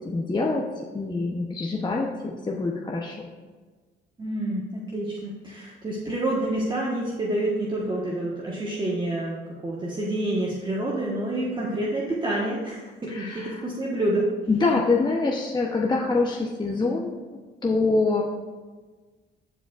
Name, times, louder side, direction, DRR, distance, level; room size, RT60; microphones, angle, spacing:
voice 1, 0.0-0.6 0.9-3.3 13.1-13.6 14.5-18.2, left 3 dB, 20° left, -1 dB, 0.9 m, -25 dB
voice 2, 4.2-9.4 9.6-14.3, right 1 dB, 25° right, -5 dB, 1.4 m, -28 dB
15.0 x 5.0 x 2.5 m, 1.3 s
cardioid pair, 90°, 20 cm